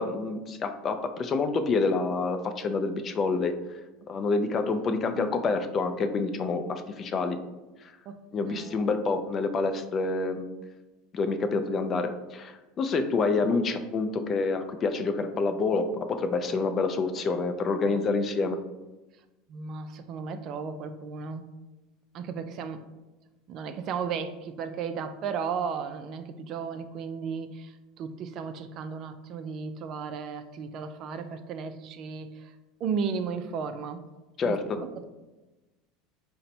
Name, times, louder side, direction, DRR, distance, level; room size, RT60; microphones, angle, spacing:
voice 1, 0.0-3.5 4.1-7.4 8.3-10.5 11.1-18.6 34.4-34.6, left 3 dB, 35° left, 8 dB, 0.4 m, -27 dB
voice 2, 8.4-8.9 19.5-21.4 22.1-22.8 23.5-32.5 32.8-34.0 34.4-35.0, right 6 dB, 50° right, 9 dB, 0.3 m, -35 dB
3.9 x 2.1 x 4.2 m, 1.1 s
supercardioid pair, 110°, 0 cm